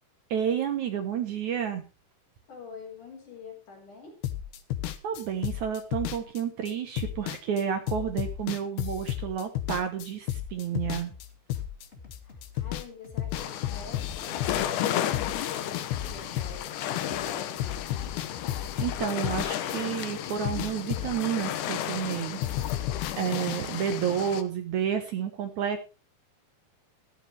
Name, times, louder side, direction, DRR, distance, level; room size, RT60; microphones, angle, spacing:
voice 1, 0.3-1.8 5.0-11.1 18.8-22.7 23.1-25.8, right 8 dB, 65° right, 8 dB, 1.9 m, -30 dB
voice 2, 2.5-4.2 12.2-18.1, left 4 dB, 50° left, 1 dB, 5.4 m, -47 dB
sound 1, 4.2-12.2 12.4-12.9 13.2-17.3 17.6-20.0 20.3-22.2 22.4-23.6, left 12 dB, 85° left, 3.2 m, -33 dB
sound 2, 11.1-18.8, left 5 dB, 25° left, 1.4 m, -49 dB
sound 3, 13.3-24.4, left 11 dB, 70° left, 2.0 m, -33 dB
14.0 x 13.0 x 3.3 m, 0.29 s
omnidirectional pair, 4.6 m